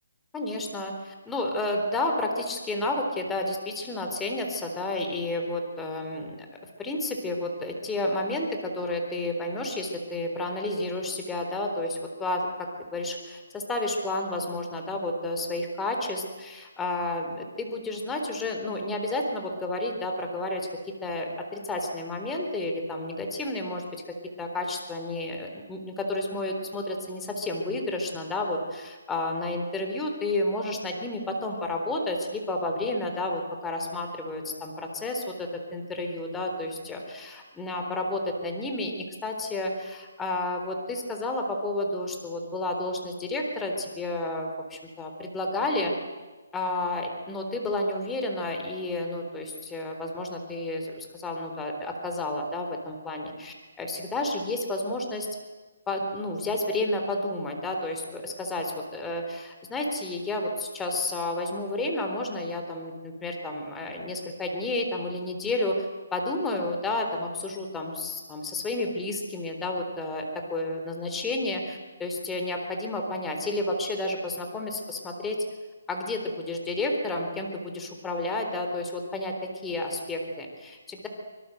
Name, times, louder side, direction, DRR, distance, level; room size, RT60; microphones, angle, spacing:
voice 1, 0.3-6.5 6.8-23.8 24.4-45.9 46.5-55.3 55.9-75.4 75.9-81.1, left 2 dB, 10° left, 2 dB, 3.8 m, -31 dB
25.0 x 24.5 x 7.9 m, 1.2 s
hypercardioid pair, 150°, 0 cm